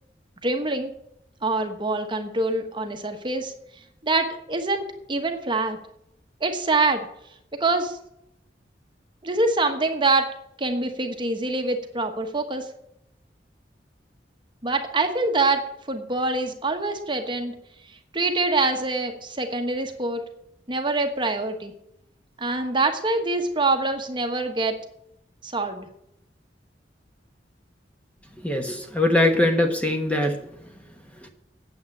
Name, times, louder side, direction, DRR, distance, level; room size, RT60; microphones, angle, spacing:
voice 1, 0.4-0.9 1.4-3.5 4.0-5.8 6.4-7.1 7.6-8.0 9.2-10.3 10.6-12.7 14.6-15.6 15.9-17.5 18.1-20.2 20.7-21.7 22.4-24.8 25.4-25.9, right 3 dB, 25° right, 5 dB, 1.2 m, -25 dB
voice 2, 28.4-30.4 31.2-31.3, left 1 dB, 10° left, 4 dB, 1.2 m, -22 dB
9.4 x 7.9 x 7.3 m, 0.77 s
head